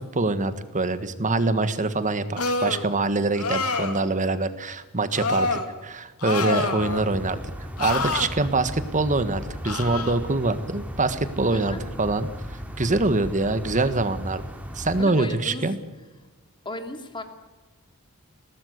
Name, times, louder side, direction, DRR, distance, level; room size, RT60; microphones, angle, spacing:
voice 1, 0.0-7.4 7.8-12.3 12.8-14.4 14.7-15.8, right 2 dB, 35° right, 11 dB, 1.6 m, -24 dB
sound 1, 2.4-2.9 3.4-4.0 5.1-5.7 6.2-7.1 7.8-8.3 9.7-10.1, left 3 dB, 80° left, 2.5 m, -26 dB
voice 2, 6.4-6.8 11.5-11.8 14.9-15.7 16.6-17.2, left 2 dB, 20° left, 5 dB, 2.9 m, -35 dB
sound 2, 6.8-15.1, equal, 5° right, 2.3 m, -37 dB
22.5 x 18.5 x 8.1 m, 1.2 s
head